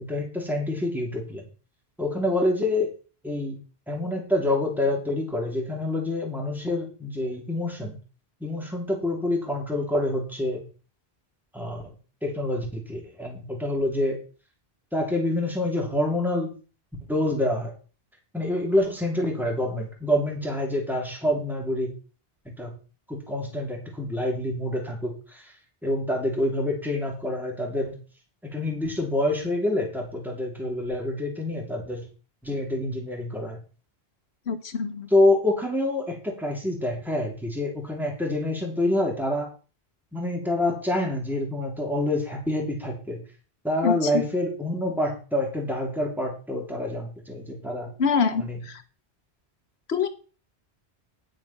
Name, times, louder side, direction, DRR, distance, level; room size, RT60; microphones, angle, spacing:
voice 1, 0.1-1.4 2.0-2.9 3.2-3.6 3.9-8.0 8.4-10.7 11.5-11.8 12.2-14.2 14.9-16.5 17.1-17.7 18.3-21.9 22.4-22.7 23.1-25.4 25.8-27.9 28.4-32.1 32.4-33.6 35.1-39.5 40.1-43.2 43.6-47.9 48.4-48.6, left 1 dB, ahead, 0 dB, 3.2 m, -27 dB
voice 2, 34.5-35.1 43.8-44.2 48.0-48.8 49.9-50.1, left 6 dB, 75° left, 10 dB, 1.3 m, -25 dB
10.5 x 5.7 x 5.9 m, 0.36 s
omnidirectional pair, 1.1 m